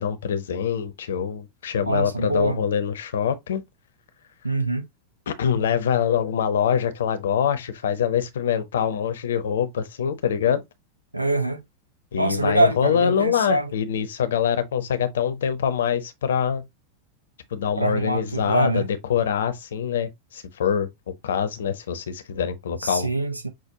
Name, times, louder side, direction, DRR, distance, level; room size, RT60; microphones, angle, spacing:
voice 1, 0.0-3.6 5.3-10.6 12.1-16.6 17.5-20.9 21.2-23.1, left 8 dB, 60° left, 0.6 m, -24 dB
voice 2, 1.8-2.6 4.4-4.8 11.1-11.6 12.1-13.7 17.8-18.9 22.8-23.5, right 2 dB, 85° right, 0.6 m, -24 dB
6.1 x 2.2 x 2.8 m
figure-of-eight pair, 90°, 0 cm